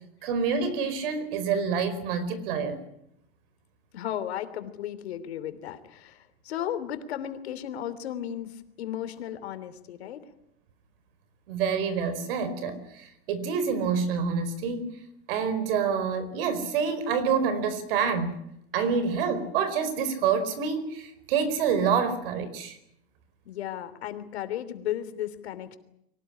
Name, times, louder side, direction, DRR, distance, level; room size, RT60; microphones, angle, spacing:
voice 1, 0.2-2.8 11.5-14.9 15.3-18.4 18.7-22.8, right 6 dB, 65° right, 13 dB, 4.8 m, -27 dB
voice 2, 3.9-10.2 23.4-25.8, left 11 dB, 85° left, 11 dB, 3.2 m, -35 dB
23.5 x 18.0 x 10.0 m, 0.78 s
supercardioid pair, 150°, 31 cm